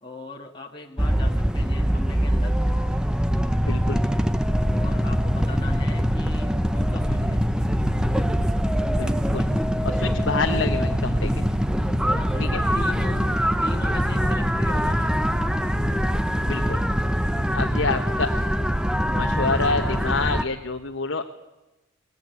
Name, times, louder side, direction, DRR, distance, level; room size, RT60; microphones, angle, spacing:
voice 1, 0.0-2.6 4.7-7.4 10.2-10.6 12.1-13.3 13.6-15.2 19.1-19.3 19.6-20.0, left 2 dB, 25° left, 0 dB, 1.7 m, -39 dB
sound 1, 1.0-20.4, equal, 5° right, 0.8 m, -23 dB
voice 2, 3.7-4.0 9.0-9.5 9.8-11.5 12.4-12.6 16.4-16.8 17.5-18.3 19.1-21.2, left 4 dB, 65° left, 3 dB, 1.2 m, -27 dB
22.5 x 20.5 x 9.7 m, 1.0 s
head